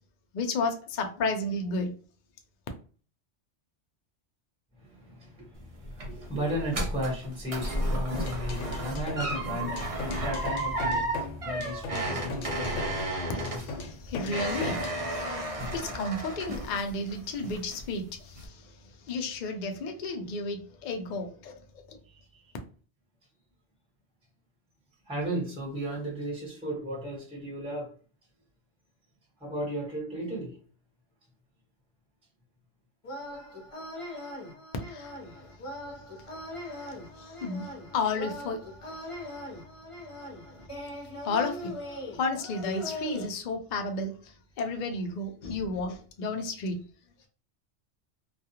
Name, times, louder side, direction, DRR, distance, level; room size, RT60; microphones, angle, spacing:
voice 1, 0.3-1.9 13.4-13.7 14.1-14.8 15.7-18.1 18.4-18.5 19.1-21.5 21.9-22.0 34.9-35.1 37.2-38.6 41.2-41.7 42.2-44.1 44.6-46.8, left 3 dB, 60° left, 0.5 m, -32 dB
voice 2, 4.8-13.3 13.8-14.3 15.2-15.4 22.1-22.5 25.1-27.9 29.4-30.6 33.3-33.5 34.0-34.2, right 1 dB, 5° right, 1.1 m, -36 dB
sound 1, 5.5-17.1 17.4-18.0 18.3-18.5, right 1 dB, 40° right, 0.6 m, -33 dB
sound 2, 8.1-15.0, left 3 dB, 90° left, 0.9 m, -39 dB
sound 3, 33.0-43.2, left 1 dB, 30° left, 0.8 m, -40 dB
2.3 x 2.3 x 2.8 m
omnidirectional pair, 1.2 m